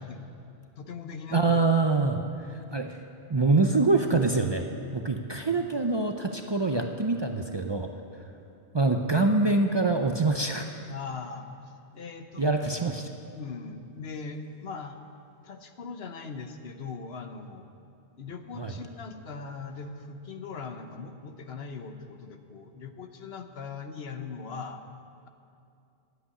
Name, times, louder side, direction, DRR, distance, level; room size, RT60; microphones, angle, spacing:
voice 1, 0.8-1.6 2.0-2.2 10.9-11.5 11.9-12.5 13.3-15.0 15.4-17.7 18.2-24.8, left 5 dB, 75° left, 7 dB, 1.1 m, -40 dB
voice 2, 1.3-3.0 3.3-4.7 4.9-8.2 8.7-10.7 12.4-13.0 18.5-18.7, right 3 dB, 35° right, 4 dB, 0.5 m, -25 dB
10.0 x 8.1 x 9.7 m, 2.5 s
omnidirectional pair, 1.0 m